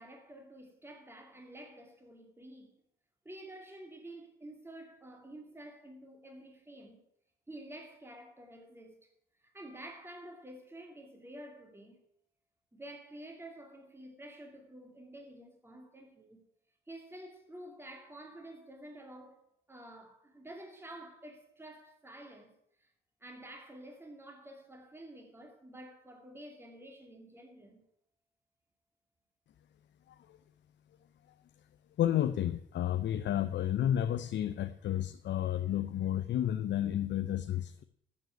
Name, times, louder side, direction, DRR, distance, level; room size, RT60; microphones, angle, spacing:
voice 1, 0.0-2.7 3.2-7.0 7.5-9.1 9.4-12.0 12.7-16.4 16.9-19.4 19.7-22.5 22.8-22.9 23.2-27.8, right 1 dB, 10° right, 2.4 m, -50 dB
voice 2, 32.0-37.8, left 11 dB, 65° left, 0.6 m, -31 dB
9.2 x 7.4 x 9.2 m
cardioid pair, 90°, 20 cm